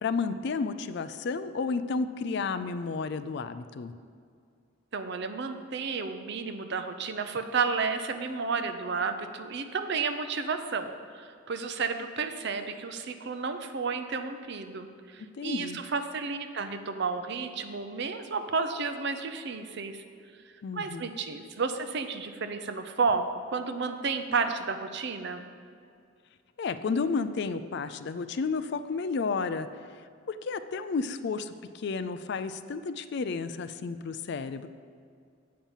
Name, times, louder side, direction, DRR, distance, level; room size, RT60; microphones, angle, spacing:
voice 1, 0.0-3.9 15.3-15.8 20.6-21.1 26.6-29.7 30.3-34.7, left 4 dB, 55° left, 11 dB, 0.4 m, -32 dB
voice 2, 4.9-20.0 20.7-25.5, right 4 dB, 55° right, 7 dB, 0.6 m, -32 dB
8.6 x 5.5 x 7.2 m, 2.3 s
head